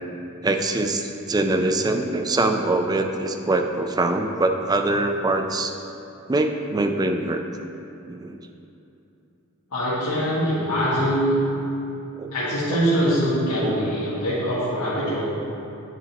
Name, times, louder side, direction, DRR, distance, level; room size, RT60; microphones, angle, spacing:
voice 1, 0.4-5.7 6.3-7.4 8.1-8.4 12.1-12.3 12.7-12.9 13.6-13.8, right 2 dB, 20° right, 5 dB, 0.4 m, -23 dB
voice 2, 9.7-11.4 12.3-15.3, equal, 75° left, -11 dB, 1.6 m, -23 dB
10.0 x 4.4 x 4.0 m, 2.8 s
head